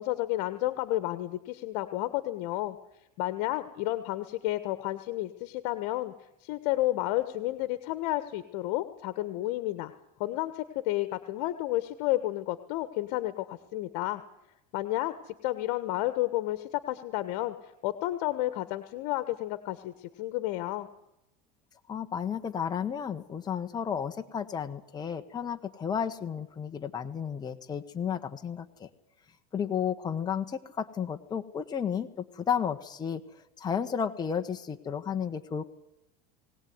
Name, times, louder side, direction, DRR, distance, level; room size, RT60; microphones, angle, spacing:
voice 1, 0.0-2.8 3.2-6.1 6.4-9.9 10.2-14.2 14.7-20.9, left 16 dB, 65° left, 12 dB, 1.5 m, -31 dB
voice 2, 21.9-28.9 29.5-33.2 33.6-35.7, left 7 dB, 20° left, 5 dB, 1.4 m, -32 dB
21.0 x 18.5 x 9.6 m, 0.86 s
supercardioid pair, 135°, 20 cm